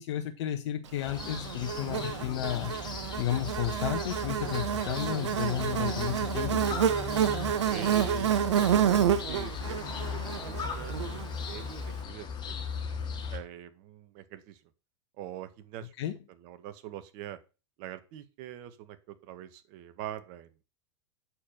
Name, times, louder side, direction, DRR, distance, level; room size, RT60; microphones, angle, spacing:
voice 1, 0.0-2.7 3.2-6.6 16.0-16.1, left 11 dB, 65° left, 5 dB, 1.5 m, -32 dB
sound 1, 1.0-13.4, left 5 dB, 30° left, 3.2 m, -37 dB
Buzz, 1.2-11.6, right 9 dB, 80° right, 1.2 m, -29 dB
voice 2, 7.7-12.5 13.3-14.6 15.2-15.9 16.3-17.4 17.8-20.5, right 11 dB, 50° right, 11 dB, 1.9 m, -43 dB
8.5 x 7.1 x 6.0 m, 0.30 s
hypercardioid pair, 105°, 15 cm